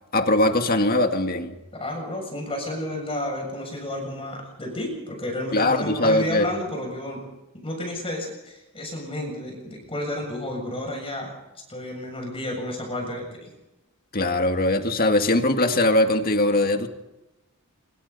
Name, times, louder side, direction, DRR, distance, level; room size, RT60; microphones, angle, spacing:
voice 1, 0.1-1.6 5.5-6.5 14.1-16.9, left 1 dB, 45° left, 6 dB, 1.9 m, -21 dB
voice 2, 1.7-7.2 7.6-11.3 11.7-13.5, left 1 dB, 25° left, 1 dB, 7.1 m, -31 dB
26.5 x 23.5 x 4.1 m, 0.99 s
head